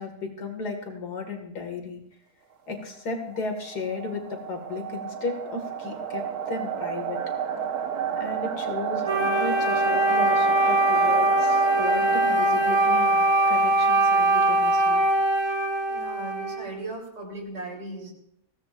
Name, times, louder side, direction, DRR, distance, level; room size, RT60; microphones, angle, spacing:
voice 1, 0.0-2.0 2.7-7.2 8.1-15.0, left 4 dB, 70° left, 4 dB, 2.5 m, -34 dB
sound 1, 3.3-14.1, right 8 dB, 65° right, 1.7 m, -32 dB
Wind instrument woodwind instrument, 9.0-16.8, right 2 dB, 25° right, 0.6 m, -22 dB
voice 2, 15.9-18.1, right 2 dB, 80° right, -1 dB, 4.2 m, -37 dB
21.0 x 17.0 x 2.5 m, 0.71 s
omnidirectional pair, 1.8 m